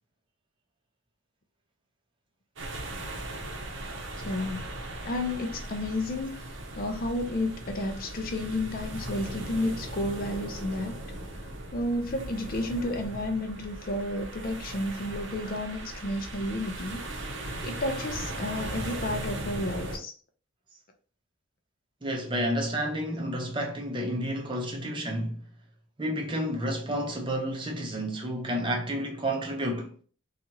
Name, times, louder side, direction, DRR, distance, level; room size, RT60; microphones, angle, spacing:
sound 1, 2.6-20.0, right 1 dB, 65° right, 0.7 m, -38 dB
voice 1, 4.2-4.7 5.0-11.0 11.7-17.2 17.6-20.1, left 1 dB, 45° left, 0.4 m, -32 dB
voice 2, 22.0-25.4 26.0-29.9, equal, 25° right, 0.5 m, -30 dB
2.7 x 2.4 x 2.8 m
head